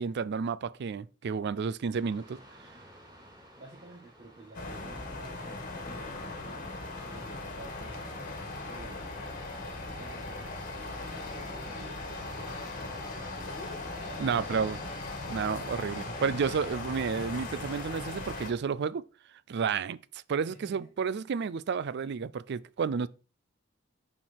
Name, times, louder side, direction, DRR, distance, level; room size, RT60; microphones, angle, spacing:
voice 1, 0.0-2.4 14.2-14.8 15.3-19.0 19.5-20.0 20.3-23.1, right 6 dB, 55° right, 0.4 m, -31 dB
sound 1, 1.9-15.0, equal, 20° right, 3.7 m, -56 dB
voice 2, 3.5-13.2 14.0-14.9 20.5-20.9, right 2 dB, 40° right, 1.7 m, -52 dB
sound 2, 4.5-18.5, left 2 dB, 45° left, 1.8 m, -39 dB
8.8 x 4.6 x 4.5 m
head